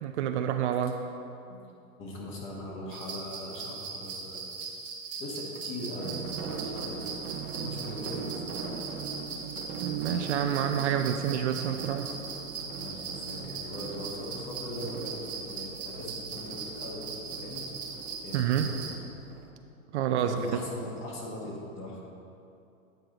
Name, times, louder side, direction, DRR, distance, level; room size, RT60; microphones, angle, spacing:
voice 1, 0.0-1.0 9.8-12.1 18.3-18.7 19.9-20.3, right 9 dB, 55° right, 6 dB, 0.5 m, -28 dB
voice 2, 2.0-4.4 5.2-7.0 7.6-8.9 12.7-17.6 18.2-18.9 20.2-22.0, left 1 dB, 30° left, -3 dB, 1.5 m, -40 dB
sound 1, 2.9-19.0, right 5 dB, 20° right, 0.7 m, -40 dB
sound 2, 6.0-19.5, right 5 dB, 80° right, 1.1 m, -41 dB
9.1 x 4.6 x 3.8 m, 2.7 s
hypercardioid pair, 130°, 42 cm